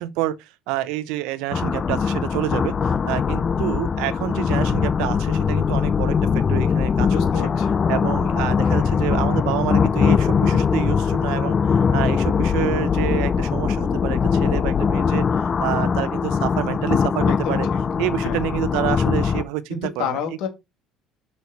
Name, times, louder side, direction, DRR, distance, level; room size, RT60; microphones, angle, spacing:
voice 1, 0.0-7.2 7.9-17.7 18.0-20.2, right 15 dB, 80° right, 0.7 m, -28 dB
sound 1, 1.5-19.4, left 6 dB, 35° left, 0.5 m, -21 dB
voice 2, 7.1-7.8 17.3-17.8 18.2-18.4 19.7-20.5, left 7 dB, 75° left, 2.3 m, -30 dB
6.2 x 5.4 x 4.2 m
supercardioid pair, 90°, 0 cm